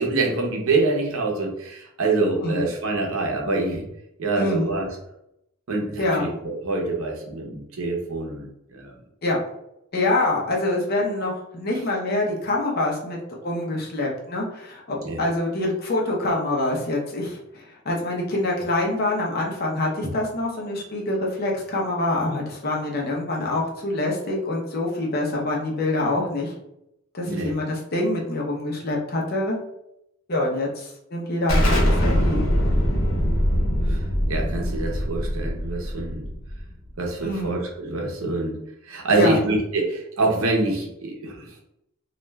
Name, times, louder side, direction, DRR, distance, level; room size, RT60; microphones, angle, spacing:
voice 1, 0.0-3.8 4.2-4.9 5.7-8.9 15.0-15.2 27.3-27.5 33.9-36.2 37.0-38.6 38.8-41.5, right 3 dB, 80° right, 0 dB, 0.7 m, -25 dB
voice 2, 4.4-4.7 6.0-6.3 9.2-9.4 9.9-26.5 27.1-29.6 30.3-32.4 37.2-37.6 39.1-39.4, left 2 dB, 45° left, -1 dB, 0.7 m, -25 dB
Explosion, 31.5-36.9, equal, 75° left, 0.9 m, -22 dB
2.4 x 2.2 x 3.1 m, 0.80 s
head